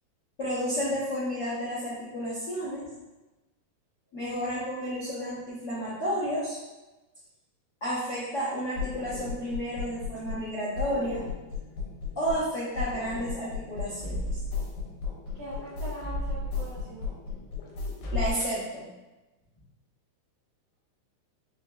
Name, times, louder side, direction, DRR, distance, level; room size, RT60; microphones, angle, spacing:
voice 1, 0.4-2.8 4.1-6.6 7.8-11.2 12.1-14.4 18.1-18.9, equal, 65° left, -10 dB, 1.0 m, -31 dB
sound 1, 8.8-10.5 10.8-12.5 12.8-18.3, left 4 dB, 85° left, 2.3 m, -34 dB
voice 2, 15.3-17.1, right 1 dB, 70° right, -9 dB, 1.6 m, -41 dB
5.4 x 2.9 x 2.3 m, 1.1 s
omnidirectional pair, 3.8 m